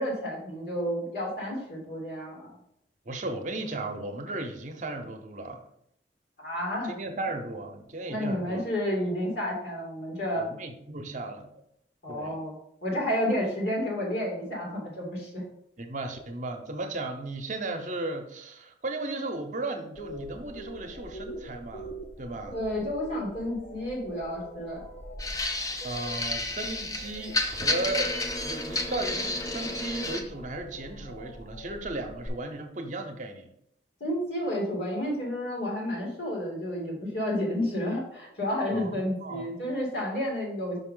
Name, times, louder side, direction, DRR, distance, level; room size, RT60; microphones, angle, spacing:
voice 1, 0.0-2.5 6.4-6.9 8.1-10.4 12.0-12.6 12.8-15.4 22.5-24.8 34.0-40.8, equal, 70° left, -3 dB, 2.8 m, -31 dB
voice 2, 3.0-5.7 6.8-8.6 10.3-11.5 12.1-12.4 15.8-22.6 25.8-33.5 38.7-39.5, right 2 dB, 45° right, 4 dB, 0.8 m, -35 dB
sound 1, 20.0-32.3, equal, 35° left, 0.9 m, -44 dB
sound 2, 25.2-30.2, left 2 dB, 20° left, 0.6 m, -31 dB
5.4 x 5.4 x 3.8 m, 0.73 s
head